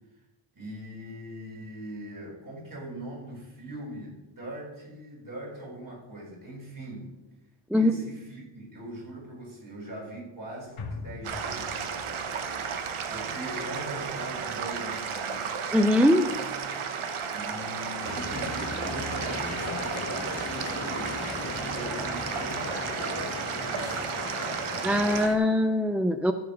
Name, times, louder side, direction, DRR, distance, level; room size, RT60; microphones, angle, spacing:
voice 1, 0.5-7.2 7.7-11.9 13.1-15.5 17.3-24.4, right 1 dB, 40° right, -3 dB, 4.5 m, -41 dB
sound 1, 10.8-15.2 15.5-15.6, left 4 dB, 85° left, 1.9 m, -44 dB
sound 2, 11.2-25.3, right 6 dB, 80° right, 1.1 m, -33 dB
voice 2, 15.7-16.3 24.8-26.3, left 1 dB, 5° right, 7 dB, 0.4 m, -22 dB
sound 3, 18.0-25.4, left 3 dB, 30° left, 1.0 m, -37 dB
14.0 x 4.9 x 6.4 m, 1.1 s
wide cardioid pair, 105°, 49 cm